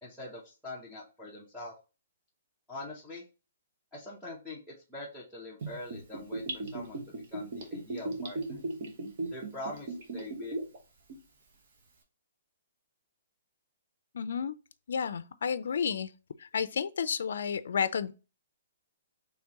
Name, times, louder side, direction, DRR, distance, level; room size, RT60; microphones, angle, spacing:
voice 1, 0.0-1.7 2.7-3.2 3.9-6.4 6.7-8.6 9.3-10.6, left 2 dB, ahead, 0.8 m, -43 dB
Gurgling / Bathtub (filling or washing), 5.6-10.8 11.1-11.2, right 2 dB, 45° right, 1.0 m, -36 dB
voice 2, 14.1-14.5 14.9-16.1 16.4-18.1, left 7 dB, 70° left, 0.4 m, -31 dB
4.4 x 3.2 x 2.9 m
hypercardioid pair, 165°, 0 cm